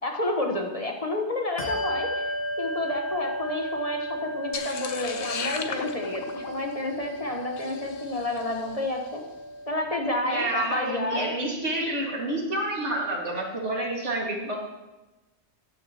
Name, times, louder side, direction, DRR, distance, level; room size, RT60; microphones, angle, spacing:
voice 1, 0.0-2.2 2.6-9.2 9.7-11.3, left 2 dB, 35° left, 1 dB, 1.3 m, -30 dB
Bell, 1.6-11.6, equal, 85° left, 1.8 m, -35 dB
sound 1, 4.5-8.8, left 5 dB, 60° left, 1.0 m, -37 dB
voice 2, 10.2-14.6, right 1 dB, 85° right, -1 dB, 2.5 m, -29 dB
14.0 x 9.7 x 3.0 m, 1.1 s
omnidirectional pair, 1.2 m